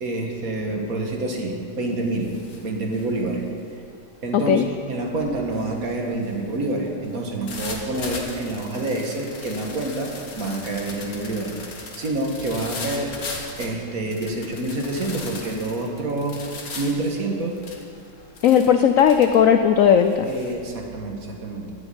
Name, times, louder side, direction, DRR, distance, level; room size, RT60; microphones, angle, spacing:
voice 1, 0.0-2.3 2.6-3.4 4.2-13.2 13.6-16.4 16.8-17.6 20.3-21.7, right 2 dB, 50° right, 1 dB, 1.8 m, -27 dB
sound 1, 0.9-1.2 1.6-20.5, left 3 dB, 50° left, 1.9 m, -39 dB
voice 2, 4.3-4.6 18.4-20.3, left 8 dB, 80° left, 7 dB, 0.7 m, -16 dB
13.5 x 6.1 x 9.8 m, 2.4 s
omnidirectional pair, 2.0 m